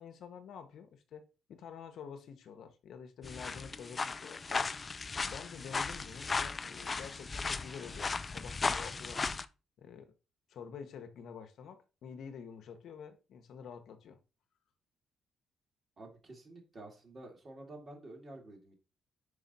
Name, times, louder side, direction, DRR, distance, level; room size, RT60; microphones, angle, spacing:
voice 1, 0.0-4.7 5.2-9.2 9.8-10.1 10.5-14.2, left 7 dB, 65° left, 0.9 m, -48 dB
sound 1, 3.2-9.4, left 4 dB, 25° left, 0.3 m, -36 dB
voice 2, 16.0-18.7, right 2 dB, 35° right, 2.0 m, -50 dB
4.9 x 4.9 x 4.0 m
cardioid pair, 125°, 0 cm